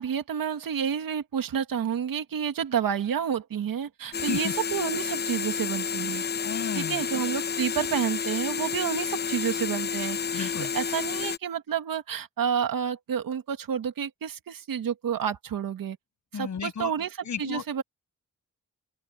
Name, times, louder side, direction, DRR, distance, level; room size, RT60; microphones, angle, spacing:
voice 1, 0.0-6.2 6.8-16.0 16.3-17.1 17.4-17.8, right 8 dB, 85° right, 2.1 m, -30 dB
sound 1, 4.1-11.4, left 7 dB, 30° left, 0.8 m, -30 dB
voice 2, 4.2-4.5 6.4-7.0 10.3-10.7 16.3-16.9 17.2-17.7, left 7 dB, 55° left, 6.9 m, -33 dB
open air
wide cardioid pair, 150°, 33 cm